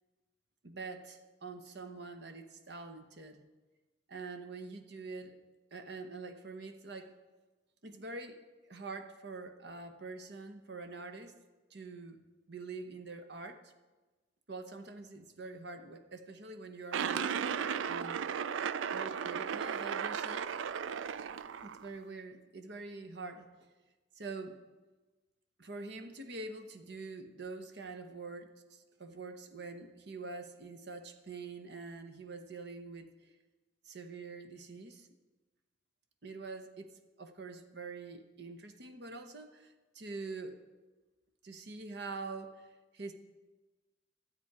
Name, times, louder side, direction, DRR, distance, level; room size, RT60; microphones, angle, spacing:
voice 1, 0.6-3.5 4.1-5.4 5.7-7.1 7.8-8.4 8.7-11.3 11.7-12.2 12.5-13.6 14.5-17.3 17.9-18.3 18.9-20.5 21.6-23.7 24.1-24.6 25.6-33.3 33.8-35.1 36.2-40.6 41.4-42.7 42.9-43.1, right 3 dB, 60° right, 7 dB, 0.9 m, -45 dB
sound 1, 16.9-21.9, right 7 dB, 80° right, 0.4 m, -35 dB
12.5 x 8.5 x 4.7 m, 1.2 s
head